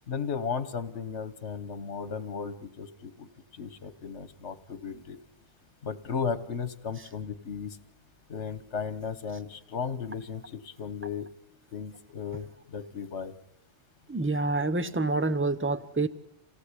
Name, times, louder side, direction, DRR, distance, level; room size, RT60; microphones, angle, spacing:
voice 1, 0.1-3.3 3.6-5.2 5.8-7.8 8.3-11.3 11.7-13.3, left 6 dB, 75° left, 13 dB, 1.6 m, -35 dB
voice 2, 14.1-16.1, right 3 dB, 10° right, 12 dB, 0.9 m, -27 dB
28.0 x 18.5 x 9.9 m, 0.82 s
omnidirectional pair, 1.2 m